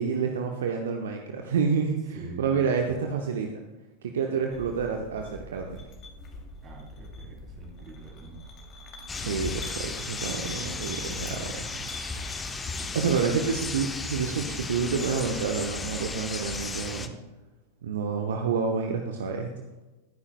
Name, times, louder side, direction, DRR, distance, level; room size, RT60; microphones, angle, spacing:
voice 1, 0.0-3.5 4.0-5.8 9.1-11.6 12.9-17.1 17.8-19.5, right 5 dB, 60° right, 3 dB, 0.9 m, -28 dB
voice 2, 2.1-2.6 4.2-4.4 6.6-8.4 10.9-11.7 12.4-13.4, right 4 dB, 30° right, 0 dB, 3.2 m, -45 dB
sound 1, 4.5-16.8, left 1 dB, 30° left, 2.6 m, -45 dB
sound 2, 9.1-17.1, left 4 dB, 15° left, 0.8 m, -35 dB
20.5 x 9.8 x 2.2 m, 1.1 s
figure-of-eight pair, 90°, 0 cm